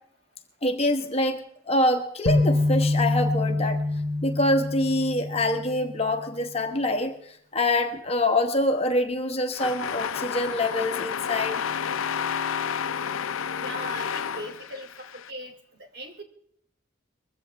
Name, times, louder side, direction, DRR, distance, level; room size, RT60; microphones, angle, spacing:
voice 1, 0.6-3.8 4.2-7.2 7.5-11.6, left 1 dB, 30° left, 6 dB, 1.4 m, -25 dB
sound 1, 2.3-6.3, left 2 dB, 60° left, 1.2 m, -26 dB
sound 2, 9.5-15.3, left 7 dB, 75° left, 0.6 m, -30 dB
voice 2, 13.6-15.6 15.9-16.2, equal, 50° right, 4 dB, 3.1 m, -39 dB
21.5 x 16.0 x 3.5 m, 0.64 s
head